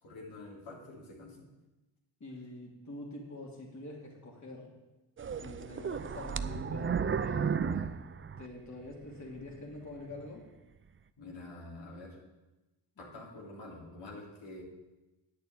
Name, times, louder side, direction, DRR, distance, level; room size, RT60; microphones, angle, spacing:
voice 1, 0.0-1.5 11.2-12.2 13.0-14.6, left 2 dB, 80° left, -4 dB, 3.2 m, -47 dB
voice 2, 2.2-4.7 5.4-8.0 8.4-10.5 13.0-13.1, left 1 dB, 40° left, -2 dB, 2.8 m, -45 dB
sound 1, 5.2-8.9 9.4-9.5 10.1-10.2, right 6 dB, 30° right, 0.5 m, -33 dB
8.7 x 6.7 x 8.5 m, 1.1 s
cardioid pair, 65°, 45 cm